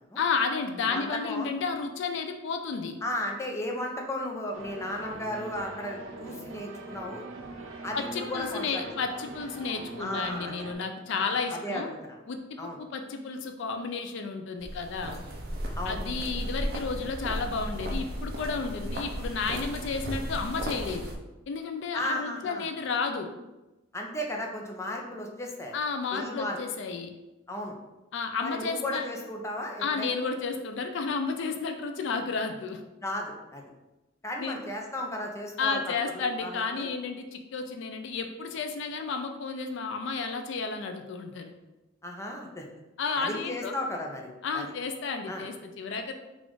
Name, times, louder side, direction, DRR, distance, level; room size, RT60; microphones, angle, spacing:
voice 1, 0.2-2.9 7.9-11.9 12.3-15.2 15.8-21.1 21.5-23.3 25.7-27.1 28.1-29.1 29.8-32.8 34.4-34.6 35.6-41.5 43.0-43.7 44.4-46.1, left 4 dB, 65° left, 6 dB, 0.4 m, -32 dB
voice 2, 0.9-1.5 3.0-7.2 7.8-8.8 10.0-10.7 11.1-12.2 12.6-12.8 15.8-16.0 21.9-22.7 23.9-25.7 26.1-26.6 27.5-27.8 28.4-30.1 33.0-33.6 34.2-36.9 42.0-42.6 43.2-44.3 44.5-44.7 45.3-45.4, left 1 dB, 15° left, 0 dB, 0.6 m, -35 dB
sound 1, 4.5-10.7, right 3 dB, 90° right, 0.6 m, -42 dB
sound 2, 14.6-21.2, equal, 50° right, 0.6 m, -35 dB
4.0 x 2.4 x 4.6 m, 1.0 s
head